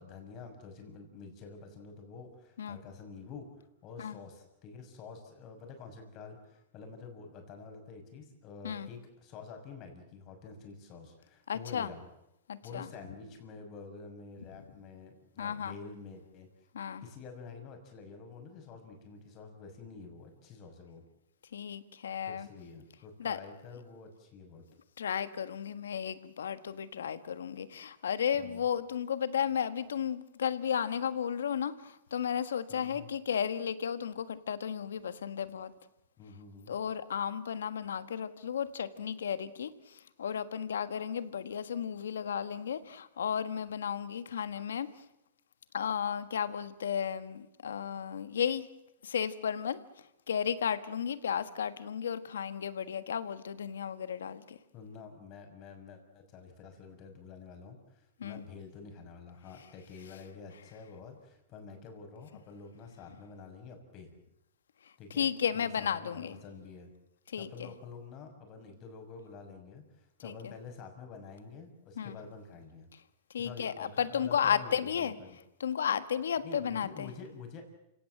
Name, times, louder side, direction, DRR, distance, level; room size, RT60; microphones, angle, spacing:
voice 1, 0.0-3.5 3.8-12.0 12.6-16.5 17.0-21.0 22.3-24.6 28.3-28.6 32.7-33.1 36.2-36.7 54.7-64.1 65.0-65.3 65.5-66.9 67.4-72.9 73.4-75.4 76.4-77.6, left 5 dB, 40° left, 5 dB, 6.3 m, -48 dB
voice 2, 11.5-11.9 12.5-12.9 15.4-15.7 16.7-17.0 21.5-22.5 23.2-23.4 25.0-35.7 36.7-44.9 45.7-48.6 49.0-49.8 50.3-54.6 58.2-58.4 65.2-66.4 67.3-67.7 70.2-70.5 72.0-72.1 73.3-75.2 75.6-77.1, left 8 dB, 90° left, 13 dB, 1.5 m, -34 dB
28.5 x 17.5 x 7.6 m, 0.85 s
hypercardioid pair, 125°, 0 cm